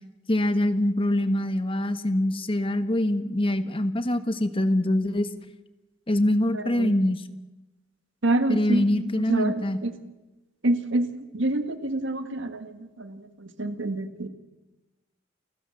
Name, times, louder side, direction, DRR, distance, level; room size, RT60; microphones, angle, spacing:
voice 1, 0.3-5.3 6.1-7.2 8.5-9.8, left 1 dB, 25° left, 10 dB, 1.3 m, -24 dB
voice 2, 6.5-6.9 8.2-9.9 10.6-14.3, right 2 dB, 65° right, 9 dB, 1.7 m, -27 dB
29.0 x 14.5 x 7.7 m, 1.1 s
head